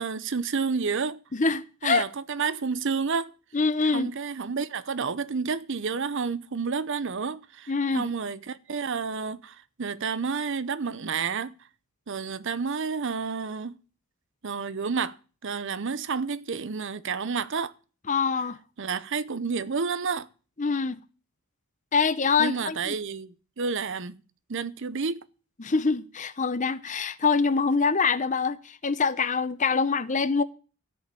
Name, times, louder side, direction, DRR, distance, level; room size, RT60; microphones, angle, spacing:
voice 1, 0.0-1.2 1.8-3.3 3.9-11.6 12.1-13.8 14.4-15.2 15.4-17.7 18.8-20.3 22.4-24.2 24.5-25.2, right 5 dB, 55° right, 0.7 m, -30 dB
voice 2, 1.3-2.0 3.5-4.1 7.7-8.1 18.1-18.6 20.6-21.0 21.9-23.0 25.6-30.4, left 4 dB, 35° left, 0.7 m, -25 dB
13.5 x 5.4 x 8.4 m
head